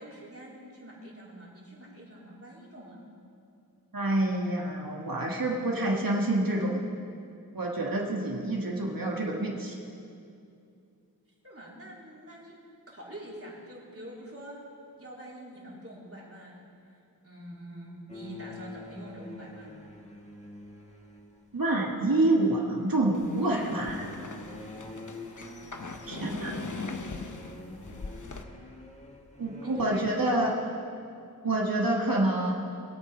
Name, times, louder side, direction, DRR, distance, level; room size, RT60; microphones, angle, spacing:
voice 1, 0.0-3.1 11.4-12.5 12.9-14.6 15.0-16.6 16.9-19.8 26.0-26.3 29.6-30.7, right 1 dB, 35° right, -5 dB, 3.7 m, -45 dB
voice 2, 3.9-6.8 7.5-9.8 21.5-24.1 26.1-26.5 29.4-30.5 31.4-32.5, right 2 dB, 60° right, -1 dB, 1.7 m, -27 dB
sound 1, 18.1-21.7 23.0-30.4, left 2 dB, 15° left, 1.6 m, -46 dB
sound 2, 23.1-28.4, left 3 dB, 50° left, 0.9 m, -41 dB
22.0 x 8.5 x 5.0 m, 2.5 s
wide cardioid pair, 50°, 38 cm